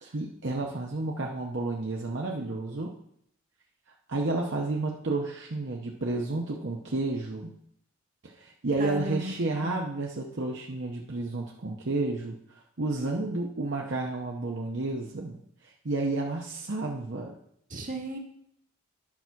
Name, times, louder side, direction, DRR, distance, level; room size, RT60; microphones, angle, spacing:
voice 1, 0.0-2.9 4.1-7.5 8.2-15.4 15.6-17.3, right 2 dB, 60° right, -1 dB, 0.9 m, -31 dB
voice 2, 8.8-9.7 17.7-18.2, right 1 dB, 40° right, 1 dB, 1.5 m, -35 dB
11.0 x 6.0 x 4.6 m, 0.70 s
head